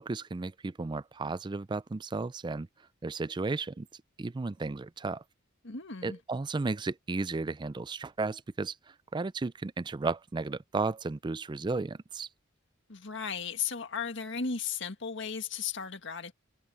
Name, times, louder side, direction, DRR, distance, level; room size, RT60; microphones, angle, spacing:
voice 1, 0.0-2.7 3.0-3.9 4.2-5.2 6.0-12.3, right 3 dB, 20° right, 0.4 m, -34 dB
voice 2, 5.6-6.2 12.9-16.3, left 6 dB, 65° left, 1.8 m, -35 dB
head